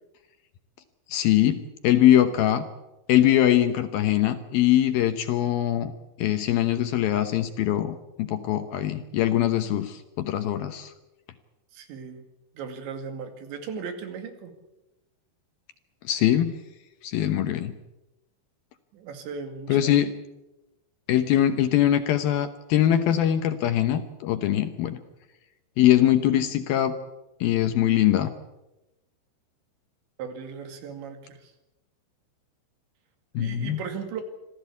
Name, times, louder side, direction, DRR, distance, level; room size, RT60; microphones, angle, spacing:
voice 1, 1.1-2.7 3.1-5.9 6.2-10.9 16.1-16.5 17.0-17.7 19.7-20.1 21.1-25.0 25.8-27.0 27.4-28.3 33.3-33.8, left 12 dB, 75° left, 8 dB, 2.2 m, -22 dB
voice 2, 11.7-12.2 12.6-14.5 18.9-20.0 30.2-31.5 33.4-34.2, right 6 dB, 70° right, 7 dB, 4.5 m, -37 dB
26.5 x 15.5 x 8.4 m, 0.98 s
omnidirectional pair, 5.5 m